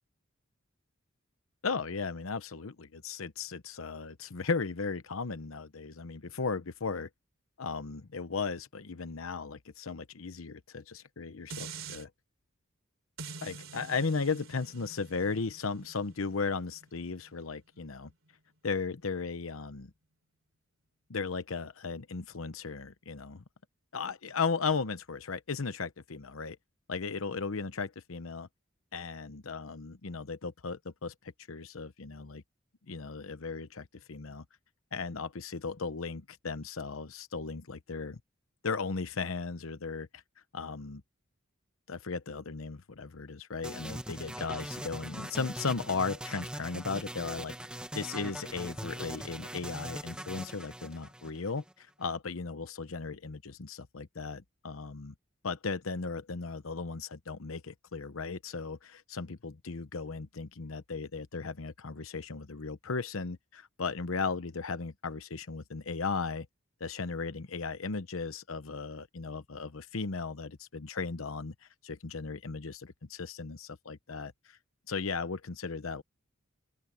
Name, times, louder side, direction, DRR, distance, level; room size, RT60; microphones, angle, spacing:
voice 1, 1.6-7.1 7.6-12.1 13.4-18.1 18.6-19.9 21.1-23.4 23.9-26.6 26.9-28.5 28.9-32.4 32.9-34.4 34.9-38.2 38.6-40.2 40.5-41.0 41.9-47.5 47.9-55.1 55.4-66.5 66.8-71.5 71.8-74.6 74.9-76.0, left 4 dB, 85° left, 0.9 m, -36 dB
sound 1, 11.5-12.0 13.2-18.3 18.8-18.9, right 4 dB, 70° right, 3.7 m, -47 dB
sound 2, 43.6-51.7, right 1 dB, 5° right, 1.2 m, -41 dB
open air
head